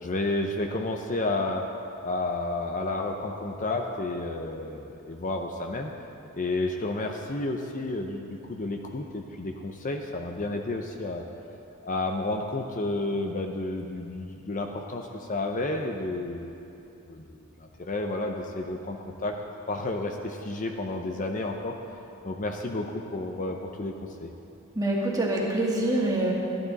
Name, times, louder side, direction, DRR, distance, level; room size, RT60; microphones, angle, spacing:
voice 1, 0.0-1.7 2.0-5.9 6.4-11.3 11.8-16.6 17.1-19.4 19.7-21.7 22.2-24.3, left 2 dB, 40° left, 3 dB, 0.7 m, -31 dB
voice 2, 24.7-26.3, right 1 dB, 15° right, -3 dB, 1.8 m, -25 dB
14.5 x 12.0 x 4.1 m, 2.8 s
head